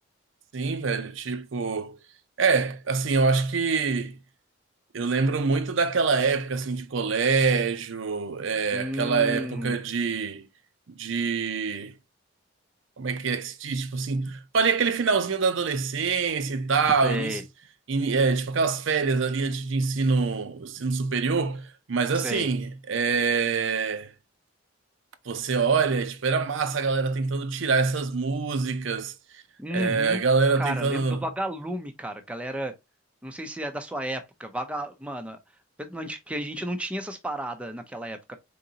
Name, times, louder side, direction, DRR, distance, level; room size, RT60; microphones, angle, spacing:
voice 1, 0.5-2.0 2.4-4.1 4.9-10.5 10.9-11.9 13.0-17.4 17.9-24.1 25.3-29.4 29.7-31.2, right 4 dB, 70° right, 0.6 m, -25 dB
voice 2, 8.7-9.8 17.0-17.4 22.1-22.5 29.6-30.2 30.6-32.7 33.2-35.4 35.8-38.4, equal, 5° right, 0.4 m, -32 dB
3.8 x 3.8 x 2.7 m
head